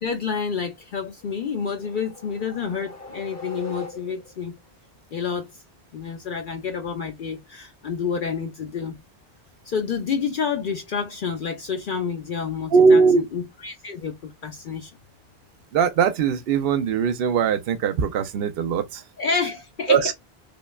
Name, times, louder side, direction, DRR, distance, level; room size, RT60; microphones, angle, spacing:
voice 1, 0.0-4.6 5.1-5.5 5.9-9.0 9.7-13.0 13.3-14.9 19.2-20.1, left 6 dB, 60° left, 0.7 m, -29 dB
sound 1, 1.2-4.5, left 2 dB, 20° left, 0.8 m, -41 dB
voice 2, 12.7-13.2 15.7-19.0 19.9-20.1, right 5 dB, 75° right, 0.8 m, -20 dB
5.0 x 2.2 x 2.3 m
omnidirectional pair, 1.0 m